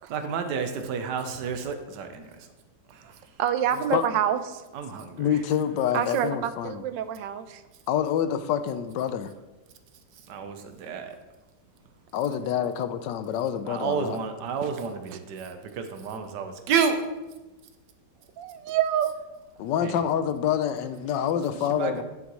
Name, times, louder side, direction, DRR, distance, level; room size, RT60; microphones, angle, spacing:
voice 1, 0.1-2.5 2.9-3.2 3.7-3.8 4.7-5.4 10.3-11.2 13.6-17.1 19.8-20.0 21.7-22.0, right 6 dB, 70° right, 7 dB, 1.4 m, -30 dB
voice 2, 3.4-4.6 5.9-7.6 14.6-14.7 15.1-15.2 18.4-19.2, right 10 dB, 90° right, 11 dB, 1.4 m, -27 dB
voice 3, 5.2-6.8 7.9-9.3 12.1-14.2 19.6-22.0, left 9 dB, 80° left, 11 dB, 1.2 m, -27 dB
10.0 x 8.3 x 3.1 m, 1.1 s
omnidirectional pair, 1.9 m